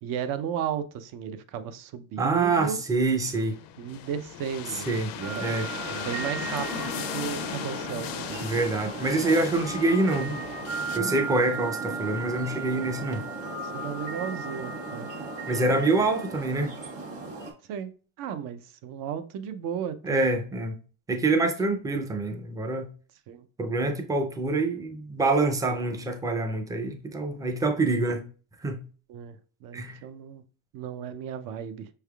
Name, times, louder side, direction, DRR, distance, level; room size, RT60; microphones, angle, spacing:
voice 1, 0.0-2.8 3.8-5.5 5.9-8.5 13.7-15.1 17.7-17.9 18.2-20.3 23.3-23.5 29.1-30.4 30.7-31.9, right 8 dB, 65° right, 0.6 m, -34 dB
voice 2, 2.2-3.5 4.9-5.1 5.4-5.7 8.4-10.4 10.9-13.2 15.5-16.7 20.0-20.7 21.1-22.9 23.6-28.2 28.6-28.8 29.7-30.0, right 2 dB, 10° right, 0.4 m, -26 dB
sound 1, 3.1-11.0, left 10 dB, 70° left, 0.5 m, -37 dB
sound 2, 5.2-17.5, right 3 dB, 45° right, 1.3 m, -35 dB
5.5 x 3.4 x 2.3 m
cardioid pair, 150°, 36 cm